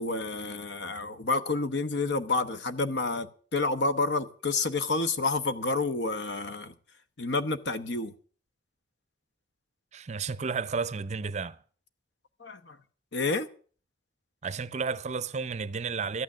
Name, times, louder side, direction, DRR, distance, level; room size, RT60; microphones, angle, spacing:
voice 1, 0.0-3.3 3.5-6.7 7.2-8.1 12.4-12.8 13.1-13.5, left 3 dB, 65° left, 1.0 m, -29 dB
voice 2, 9.9-11.6 14.4-16.2, right 5 dB, 40° right, 0.5 m, -32 dB
14.0 x 9.2 x 7.2 m
head